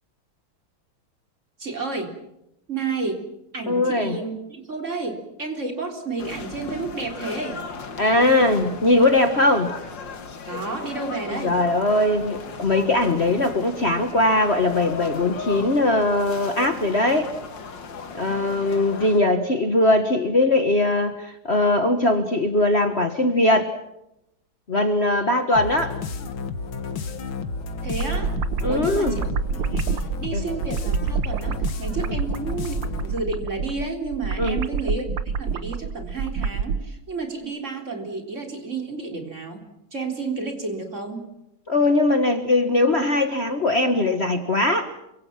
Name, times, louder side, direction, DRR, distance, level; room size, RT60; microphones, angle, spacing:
voice 1, 1.6-2.1 2.7-3.3 3.5-7.6 10.5-11.6 27.8-28.4 28.7-32.8 33.0-35.1 35.4-41.3, right 3 dB, 35° right, 4 dB, 4.1 m, -31 dB
voice 2, 3.7-4.2 8.0-9.7 11.3-17.3 18.1-23.7 24.7-26.0 28.6-29.2 30.3-30.4 34.4-34.6 41.7-44.9, left 2 dB, 35° left, 7 dB, 1.6 m, -20 dB
sound 1, 6.2-19.2, left 5 dB, 65° left, 2.4 m, -36 dB
sound 2, 25.6-33.2, left 4 dB, 80° left, 2.5 m, -32 dB
sound 3, 27.6-36.8, right 6 dB, 70° right, 1.8 m, -27 dB
28.5 x 25.0 x 5.9 m, 0.85 s
omnidirectional pair, 2.2 m